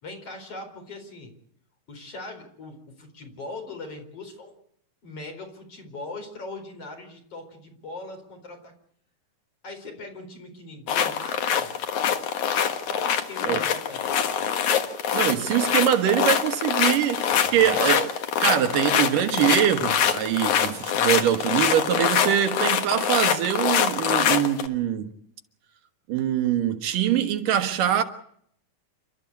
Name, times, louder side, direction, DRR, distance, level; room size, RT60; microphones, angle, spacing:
voice 1, 0.0-1.3 1.9-4.5 5.0-8.7 9.6-11.7 12.9-14.2 17.3-17.8, left 2 dB, 45° left, 5.1 m, -40 dB
sound 1, 10.9-24.7, left 8 dB, 65° left, 2.9 m, -24 dB
voice 2, 15.1-18.1 18.4-25.1 26.1-28.0, right 10 dB, 75° right, 3.0 m, -23 dB
29.0 x 13.0 x 8.4 m
omnidirectional pair, 3.9 m